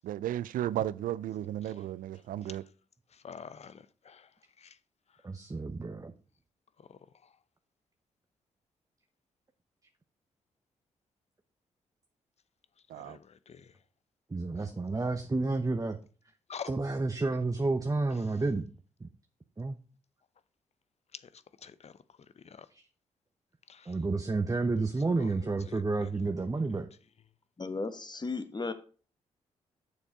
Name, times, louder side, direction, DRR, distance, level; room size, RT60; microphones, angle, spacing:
voice 1, 0.0-2.6 12.9-13.2, right 12 dB, 70° right, 0.5 m, -34 dB
voice 2, 3.2-4.2 13.0-13.2 13.5-13.6 16.5-16.7 21.6-21.9 22.6-22.7 23.7-23.9 25.2-25.3 25.7-26.1, left 7 dB, 45° left, 0.7 m, -45 dB
voice 3, 5.2-6.1 14.3-16.0 16.7-18.7 19.6-19.8 23.9-26.9, right 3 dB, 25° right, 0.9 m, -30 dB
voice 4, 27.6-28.7, left 3 dB, 30° left, 1.4 m, -35 dB
7.1 x 6.7 x 5.1 m
hypercardioid pair, 40°, 15 cm